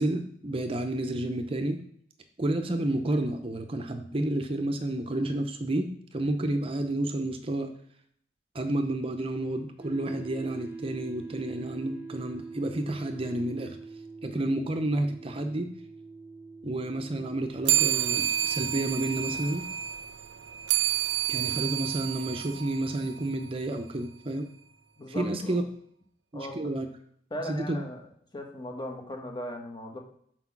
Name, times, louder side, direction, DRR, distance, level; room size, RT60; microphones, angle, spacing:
voice 1, 0.0-1.8 2.4-7.7 8.5-13.8 14.2-15.7 16.6-19.6 21.3-24.5 25.1-25.6 26.3-26.9 27.5-27.8, right 1 dB, 30° right, 7 dB, 0.6 m, -30 dB
sound 1, 9.8-25.0, right 4 dB, 15° right, 1.1 m, -46 dB
sound 2, 17.6-23.5, right 12 dB, 80° right, 0.4 m, -29 dB
voice 2, 25.0-25.6 26.3-26.7 27.3-28.0 28.3-30.0, equal, 25° left, 2 dB, 1.3 m, -38 dB
6.0 x 4.6 x 5.9 m, 0.66 s
head